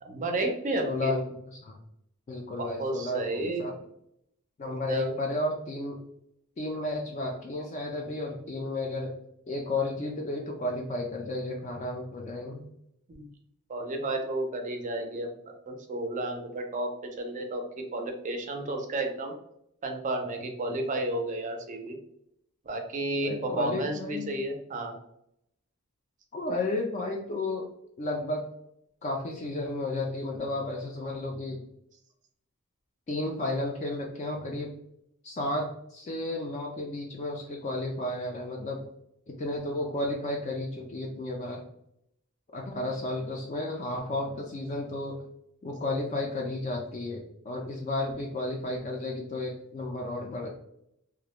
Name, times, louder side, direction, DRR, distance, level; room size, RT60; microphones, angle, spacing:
voice 1, 0.0-1.1 2.6-3.7 4.6-5.1 13.1-13.3 13.7-16.9 17.2-17.6 17.9-19.3 19.8-22.0 22.7-24.9, right 2 dB, 35° right, 4 dB, 0.4 m, -32 dB
voice 2, 0.7-1.8 2.3-3.7 4.6-6.0 6.6-9.1 9.5-12.6 23.2-24.3 26.3-27.7 28.0-28.5 29.0-31.6 33.1-34.7 35.2-38.9 39.3-41.6 42.5-45.2 45.6-50.5, left 2 dB, 30° left, 0 dB, 0.3 m, -33 dB
2.3 x 2.1 x 2.9 m, 0.77 s
head